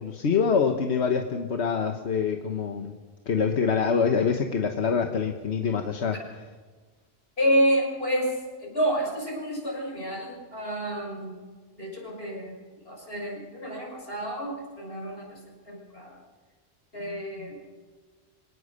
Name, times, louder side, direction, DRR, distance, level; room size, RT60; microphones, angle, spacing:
voice 1, 0.0-2.9 3.3-6.2, left 6 dB, 90° left, 5 dB, 1.5 m, -25 dB
voice 2, 7.4-11.4 11.8-12.6 12.8-15.4 15.6-16.1 16.9-17.6, equal, 65° left, 0 dB, 6.6 m, -29 dB
25.0 x 18.0 x 6.6 m, 1.4 s
omnidirectional pair, 1.1 m